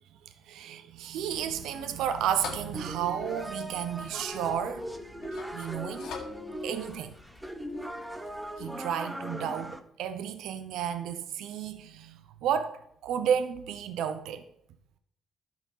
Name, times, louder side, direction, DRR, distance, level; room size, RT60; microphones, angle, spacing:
voice 1, 0.5-4.9 5.5-6.1 6.6-7.1 8.6-14.4, right 9 dB, 85° right, 0.7 m, -32 dB
sound 1, 1.3-8.7, left 6 dB, 75° left, 1.8 m, -46 dB
sound 2, 2.7-9.8, equal, 5° right, 1.0 m, -39 dB
11.5 x 5.0 x 5.6 m
cardioid pair, 90°, 0 cm